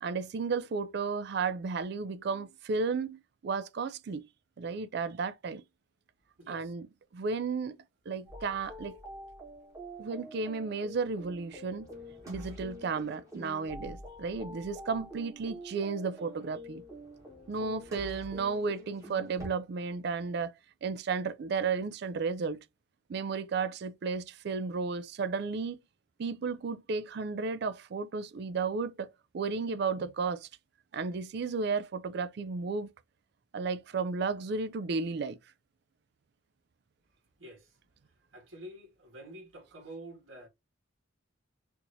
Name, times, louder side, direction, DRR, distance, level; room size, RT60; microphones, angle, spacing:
voice 1, 0.0-4.2 4.6-5.6 6.5-6.9 7.1-7.8 8.1-9.0 10.0-11.9 12.3-16.8 17.5-20.5 20.8-22.6 23.1-25.8 26.2-29.1 29.3-30.5 30.9-32.9 33.5-35.4, right 4 dB, 50° right, 0.3 m, -33 dB
voice 2, 6.4-6.7 37.4-37.8 38.3-40.5, right 1 dB, 75° right, 1.9 m, -48 dB
sound 1, 8.3-19.5, equal, 15° right, 1.2 m, -46 dB
4.5 x 2.7 x 2.6 m
head